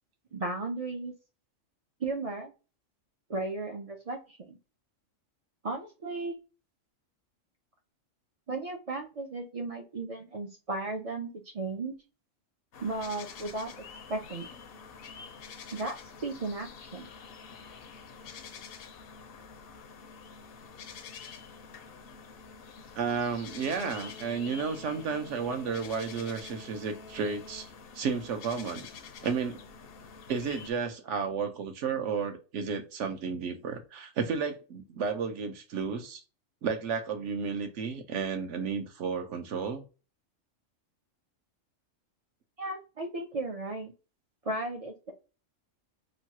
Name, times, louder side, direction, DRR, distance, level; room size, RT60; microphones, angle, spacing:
voice 1, 0.3-1.1 2.0-2.5 3.3-4.6 5.6-6.3 8.5-12.0 12.8-13.7 14.1-14.5 15.7-16.0 16.2-17.1 42.6-43.9 44.4-45.1, right 2 dB, 50° right, 3 dB, 0.4 m, -35 dB
sound 1, 12.7-30.7, left 5 dB, 60° left, 0.6 m, -47 dB
voice 2, 22.9-27.7 27.9-28.9 29.2-29.6 30.3-36.2 36.6-39.8, right 5 dB, 70° right, 6 dB, 1.0 m, -32 dB
3.0 x 2.3 x 2.7 m, 0.33 s
omnidirectional pair, 1.3 m